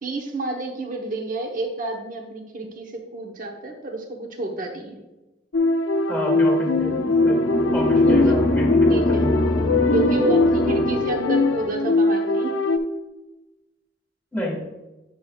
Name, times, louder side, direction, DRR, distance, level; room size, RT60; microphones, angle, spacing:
voice 1, 0.0-5.0 8.0-8.3 8.9-9.3 9.9-12.6, right 2 dB, 45° right, 2 dB, 1.0 m, -29 dB
sound 1, 5.5-12.8, left 3 dB, 90° left, 0.5 m, -21 dB
voice 2, 6.1-7.4 7.7-9.3 10.6-10.7 14.3-14.6, equal, 5° left, -2 dB, 1.7 m, -29 dB
sound 2, 6.8-11.7, left 1 dB, 45° left, 0.7 m, -23 dB
9.3 x 6.1 x 2.3 m, 1.1 s
head